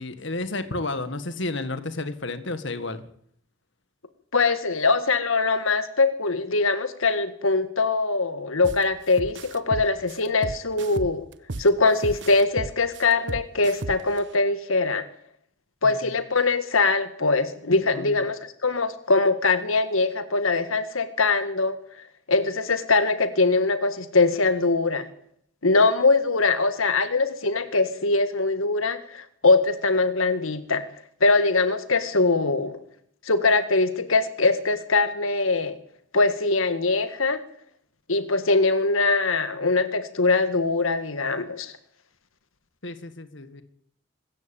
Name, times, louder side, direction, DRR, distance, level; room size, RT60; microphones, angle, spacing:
voice 1, 0.0-3.1 15.8-16.1 17.9-18.1 42.8-43.6, left 2 dB, 60° left, 11 dB, 1.8 m, -32 dB
voice 2, 4.3-11.2 11.6-15.0 15.8-21.8 22.3-25.1 25.6-30.8 31.2-32.8 33.2-35.8 36.1-37.4 38.1-41.7, left 3 dB, 80° left, 11 dB, 1.8 m, -22 dB
sound 1, 8.6-8.8 9.2-11.7 12.0-14.2, right 2 dB, 55° right, 1.0 m, -33 dB
25.0 x 14.5 x 9.0 m, 0.66 s
head